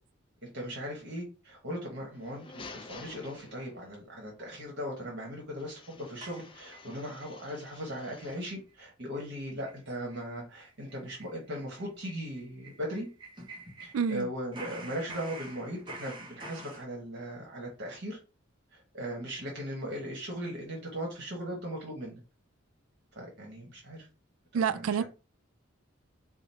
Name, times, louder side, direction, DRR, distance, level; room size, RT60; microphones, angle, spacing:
voice 1, 0.4-13.1 13.8-18.2 18.7-22.2 23.1-24.0 24.7-25.0, equal, 55° right, 1.2 m, -38 dB
sound 1, 2.1-4.0 5.6-8.6, left 4 dB, 25° left, 0.4 m, -51 dB
sound 2, 6.2-7.3 7.7-7.8 8.2-8.4 8.7-8.8 9.1-9.3 9.6-9.8 10.1-10.2 10.6-14.2 14.5-16.8, right 2 dB, 25° right, 0.9 m, -47 dB
voice 2, 13.9-14.3 24.5-25.0, right 7 dB, 90° right, 0.3 m, -28 dB
3.8 x 2.0 x 4.1 m
head